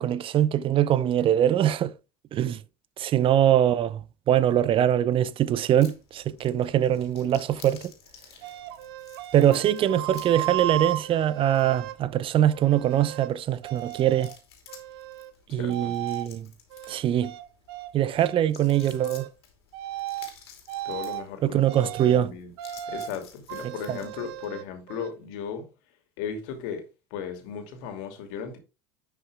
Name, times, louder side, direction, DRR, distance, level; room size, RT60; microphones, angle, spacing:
voice 1, 0.0-1.9 2.3-2.6 3.0-4.0 4.3-7.9 9.3-14.3 15.5-16.5 16.9-17.3 17.9-19.3 21.4-22.3 23.6-24.0, right 11 dB, 45° right, 0.7 m, -23 dB
sound 1, 5.8-24.5, left 7 dB, 85° left, 2.8 m, -53 dB
sound 2, 8.4-12.0 12.5-13.3 13.6-14.4 14.7-15.3 15.7-16.3 16.7-17.9 18.2-18.4 18.7-19.3 19.7-20.3 20.7-21.2 21.7-22.2 22.6-23.1 23.5-25.1, right 14 dB, 75° right, 1.0 m, -35 dB
voice 2, 15.5-15.9 20.8-22.5 22.9-25.7 26.2-26.8 27.1-28.6, left 7 dB, 70° left, 2.7 m, -36 dB
10.5 x 5.8 x 3.5 m
hypercardioid pair, 80°, 13 cm